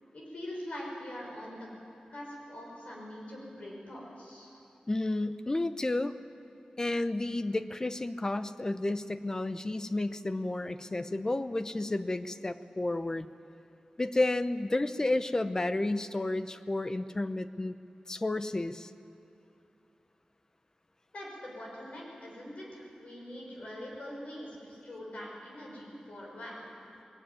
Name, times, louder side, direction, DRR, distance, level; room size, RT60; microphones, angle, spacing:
voice 1, 0.1-1.7 2.1-4.5 21.1-26.7, left 1 dB, 65° left, -3 dB, 6.1 m, -43 dB
voice 2, 4.9-6.1 6.8-13.3 14.0-17.8 18.1-18.9, left 2 dB, 25° left, 12 dB, 0.7 m, -31 dB
20.0 x 15.5 x 9.6 m, 2.7 s
wide cardioid pair, 110°, 2 cm